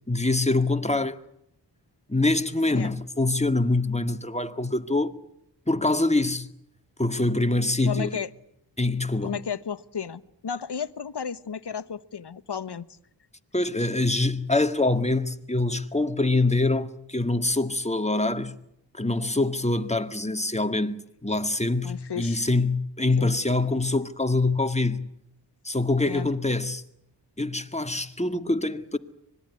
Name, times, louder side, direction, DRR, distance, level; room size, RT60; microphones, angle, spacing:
voice 1, 0.1-1.2 2.1-5.2 5.7-6.5 7.0-8.2 8.8-9.4 13.5-18.6 18.9-25.1 25.6-26.8 27.4-29.0, left 2 dB, 15° left, 1.9 m, -25 dB
voice 2, 7.8-8.3 9.2-13.0 21.8-22.4 23.2-23.3 26.1-26.3, left 7 dB, 65° left, 1.2 m, -33 dB
25.5 x 20.5 x 9.7 m
cardioid pair, 45°, 43 cm